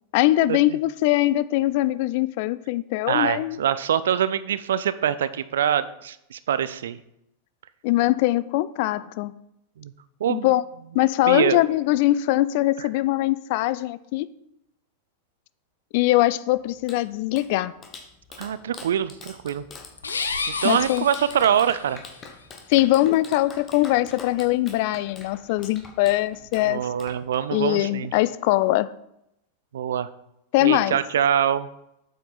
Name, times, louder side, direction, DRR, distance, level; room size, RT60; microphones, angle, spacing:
voice 1, 0.1-3.6 7.8-9.3 10.3-10.6 10.9-14.3 15.9-17.7 20.6-21.1 22.7-26.8 27.5-28.9 30.5-31.0, left 16 dB, 50° left, 17 dB, 0.3 m, -22 dB
voice 2, 3.1-7.0 9.8-9.9 10.2-10.5 11.3-11.6 18.4-19.6 20.5-22.0 26.7-28.1 29.7-30.1 30.6-31.7, right 9 dB, 60° right, 15 dB, 0.4 m, -24 dB
Clapping, 16.5-27.7, left 4 dB, 25° left, 1.2 m, -45 dB
sound 1, 20.0-22.0, left 4 dB, 75° left, 0.7 m, -31 dB
8.0 x 6.5 x 4.0 m, 0.81 s
figure-of-eight pair, 90°, 0 cm